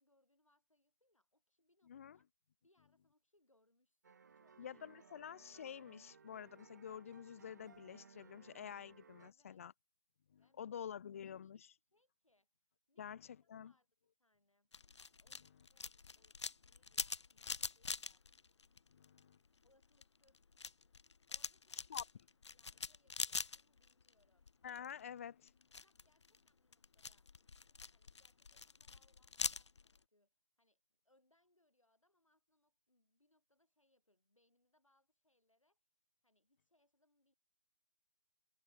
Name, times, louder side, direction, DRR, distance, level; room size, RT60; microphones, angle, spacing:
voice 1, 0.0-2.3 2.6-4.9 5.1-5.2 9.2-9.6 10.4-11.0 11.2-11.6 11.9-13.9 14.2-14.7 15.1-18.3 19.6-20.4 21.3-22.1 22.5-24.5 25.8-35.9 36.2-37.3, left 1 dB, 85° left, 7.8 m, -79 dB
voice 2, 1.9-2.2 4.6-9.7 10.3-11.7 13.0-13.7 18.9-19.4 21.9-22.0 24.6-25.5, left 8 dB, 25° left, 0.9 m, -49 dB
sound 1, 4.0-9.3, right 6 dB, 35° right, 0.6 m, -62 dB
sound 2, 14.7-19.3 19.7-24.1 24.4-25.0 25.5-30.0, left 5 dB, 65° left, 0.5 m, -44 dB
figure-of-eight pair, 155°, 16 cm